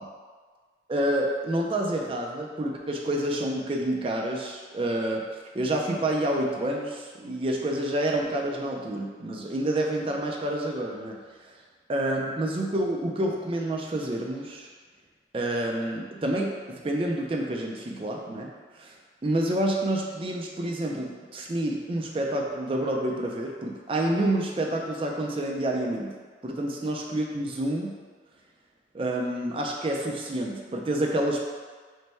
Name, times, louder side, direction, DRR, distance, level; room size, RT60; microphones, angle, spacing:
voice 1, 0.9-5.2 5.5-11.2 11.9-14.7 15.3-18.5 18.8-18.9 19.2-26.2 26.4-27.9 28.9-31.4, right 1 dB, 30° right, 0 dB, 0.4 m, -28 dB
3.2 x 2.2 x 4.1 m, 1.5 s
head